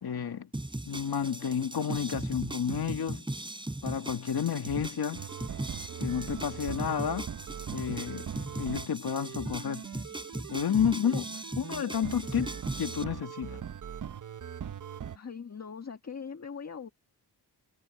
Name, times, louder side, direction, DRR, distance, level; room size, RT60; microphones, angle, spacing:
voice 1, 0.0-0.5 0.9-3.3 3.8-5.2 6.0-7.3 7.7-8.3 8.6-9.9 10.5-11.3 11.6-13.6, left 8 dB, 60° left, 2.0 m, -31 dB
sound 1, 0.5-13.0, right 1 dB, 10° right, 3.7 m, -38 dB
sound 2, 5.1-15.2, right 8 dB, 50° right, 0.7 m, -41 dB
voice 2, 15.1-16.9, left 6 dB, 40° left, 1.6 m, -41 dB
wide cardioid pair, 165°, 41 cm